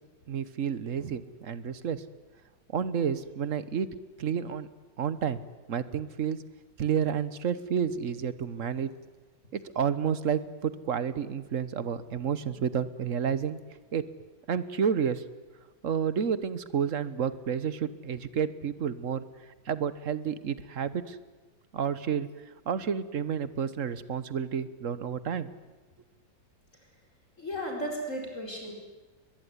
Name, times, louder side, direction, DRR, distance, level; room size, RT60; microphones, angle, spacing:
voice 1, 0.3-2.0 2.7-3.9 4.2-4.7 5.0-5.4 5.7-6.4 6.8-8.9 9.5-13.6 13.9-14.0 14.5-15.2 15.8-19.2 19.7-21.2 21.7-22.3 22.7-25.5, right 7 dB, 50° right, 15 dB, 1.3 m, -30 dB
voice 2, 27.4-28.7, equal, 40° left, 1 dB, 5.0 m, -34 dB
22.0 x 22.0 x 9.7 m, 1.3 s
omnidirectional pair, 2.1 m